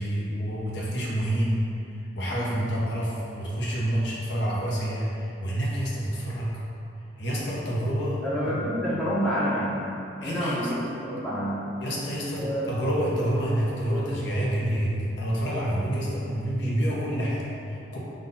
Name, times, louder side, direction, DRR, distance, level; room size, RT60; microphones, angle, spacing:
voice 1, 0.0-1.7 2.1-6.6 7.2-8.6 10.2-10.7 11.8-18.0, equal, 65° left, -5 dB, 0.8 m, -28 dB
voice 2, 2.3-2.6 8.2-9.9 10.2-11.6 12.4-12.7, equal, ahead, -11 dB, 0.9 m, -28 dB
3.9 x 2.4 x 3.9 m, 2.6 s
head